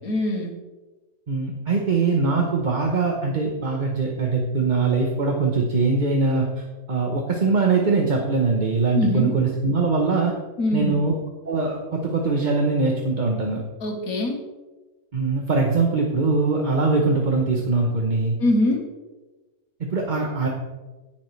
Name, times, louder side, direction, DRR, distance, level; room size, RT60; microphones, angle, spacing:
voice 1, 0.0-0.6 8.9-9.4 10.6-11.0 13.8-14.4 18.4-18.8, left 1 dB, 70° left, 2 dB, 2.0 m, -22 dB
voice 2, 1.3-6.4 6.9-10.3 10.7-11.1 11.4-13.6 15.1-18.4 19.8-20.5, right 4 dB, 35° right, 0 dB, 1.0 m, -22 dB
17.0 x 7.2 x 3.3 m, 1.2 s
omnidirectional pair, 1.6 m